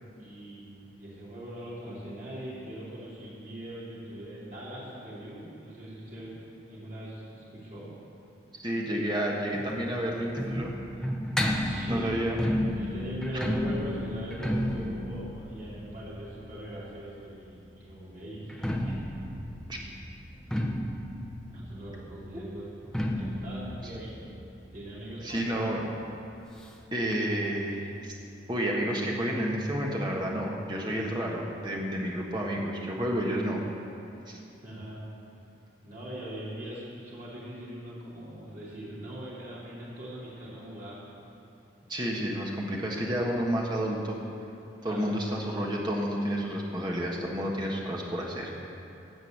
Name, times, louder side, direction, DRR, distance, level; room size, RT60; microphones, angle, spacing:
voice 1, 0.2-7.9 11.6-12.2 12.7-19.3 21.5-22.7 23.1-24.2 24.7-25.9 34.6-35.0 35.8-41.0 44.8-45.3, right 1 dB, 45° right, -8 dB, 3.3 m, -41 dB
voice 2, 8.5-10.7 11.9-12.4 13.3-13.4 19.7-19.8 25.2-25.8 26.9-28.2 28.5-33.6 34.3-34.4 41.9-44.1 44.8-48.5, equal, 25° right, -2 dB, 1.5 m, -30 dB
sound 1, 9.5-17.2 18.4-25.7 26.0-26.1 26.3-26.4 27.1-27.2, equal, 5° left, 0.7 m, -32 dB
16.0 x 5.4 x 7.9 m, 2.7 s
head